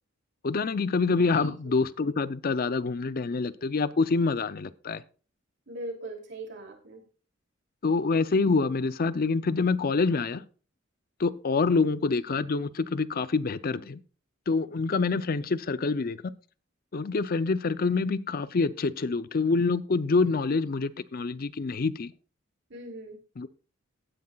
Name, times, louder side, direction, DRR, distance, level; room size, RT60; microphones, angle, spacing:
voice 1, 0.4-5.0 7.8-10.5 11.2-14.0 14.5-16.3 16.9-22.1 23.4-23.5, left 4 dB, 45° left, 0.5 m, -26 dB
voice 2, 5.7-7.0 22.7-23.2, right 1 dB, 65° right, 2.8 m, -40 dB
16.5 x 9.4 x 2.3 m
head